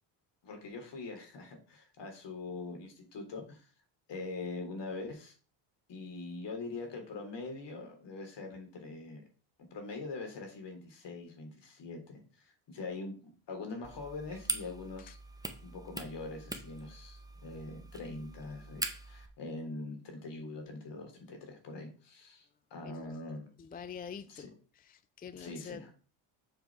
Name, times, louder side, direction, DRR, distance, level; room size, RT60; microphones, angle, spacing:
voice 1, 0.4-3.7 4.1-5.3 5.9-9.2 9.7-15.2 15.6-23.5 24.3-24.5 25.4-25.9, left 3 dB, 55° left, 4 dB, 3.7 m, -43 dB
sound 1, 13.8-19.3, right 2 dB, 5° right, 1.5 m, -42 dB
voice 2, 22.8-23.2 23.6-24.5 24.8-25.9, left 7 dB, 20° left, 13 dB, 0.5 m, -46 dB
7.4 x 5.2 x 4.9 m, 0.39 s
supercardioid pair, 80°, 50 cm